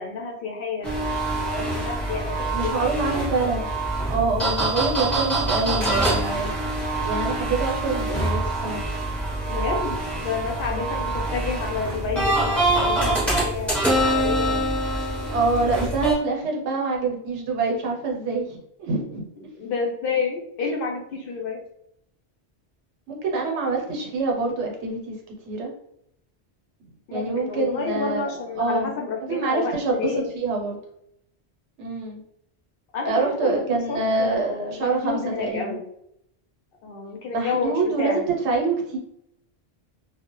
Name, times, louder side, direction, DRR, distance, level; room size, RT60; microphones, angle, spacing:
voice 1, 0.0-3.2 9.5-14.7 19.5-21.6 27.1-30.3 32.9-35.9 36.8-38.2, left 4 dB, 65° left, 0 dB, 0.7 m, -30 dB
sound 1, 0.8-16.1, right 2 dB, ahead, 0.6 m, -25 dB
voice 2, 2.4-3.7 4.1-6.5 7.0-8.9 10.7-10.8 15.3-19.2 23.1-25.2 25.5-25.7 27.1-28.2 28.6-29.0 29.3-30.8 31.8-32.2 33.1-35.7 37.3-39.0, right 3 dB, 90° right, 0 dB, 0.9 m, -26 dB
2.1 x 2.0 x 2.9 m, 0.76 s
omnidirectional pair, 1.1 m